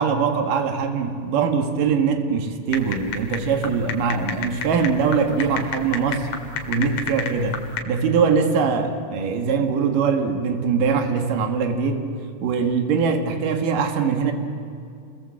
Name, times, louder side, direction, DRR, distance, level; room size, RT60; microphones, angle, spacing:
voice 1, 0.0-6.3 6.7-7.6 7.9-12.1 12.4-14.3, right 5 dB, 85° right, 5 dB, 3.3 m, -22 dB
sound 1, 2.7-7.8, left 6 dB, 70° left, 3.4 m, -32 dB
29.5 x 21.5 x 7.7 m, 2.4 s
omnidirectional pair, 3.7 m